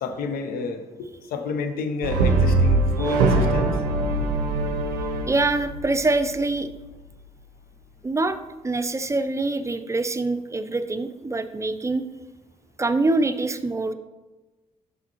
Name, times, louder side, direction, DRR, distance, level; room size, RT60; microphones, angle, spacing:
voice 1, 0.0-3.8, left 4 dB, 70° left, 8 dB, 0.6 m, -30 dB
Brass instrument, 2.0-6.3, right 3 dB, 85° right, 0.5 m, -22 dB
voice 2, 5.3-6.7 8.0-8.4 8.6-12.0 12.8-13.9, right 2 dB, 20° right, 9 dB, 0.5 m, -24 dB
5.8 x 5.7 x 2.9 m, 1.2 s
hypercardioid pair, 45°, 16 cm